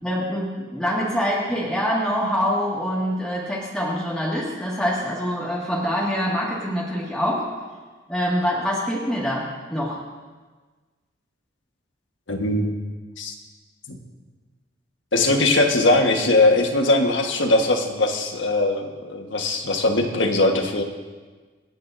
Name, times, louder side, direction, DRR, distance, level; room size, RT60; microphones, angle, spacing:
voice 1, 0.0-7.4 8.1-10.0, equal, 5° left, -7 dB, 1.9 m, -25 dB
voice 2, 12.3-12.7 13.2-13.3 13.9-14.0 15.1-20.8, left 2 dB, 75° left, 3 dB, 1.4 m, -20 dB
26.5 x 9.3 x 2.6 m, 1.4 s
head